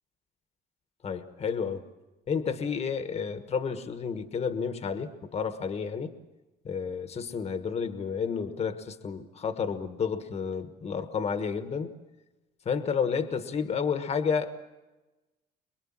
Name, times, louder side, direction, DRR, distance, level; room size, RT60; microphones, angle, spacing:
voice 1, 1.0-1.8 2.3-6.1 6.6-11.9 12.6-14.5, left 6 dB, 40° left, 9 dB, 1.4 m, -31 dB
24.5 x 22.0 x 7.4 m, 1.1 s
cardioid pair, 110°, 17 cm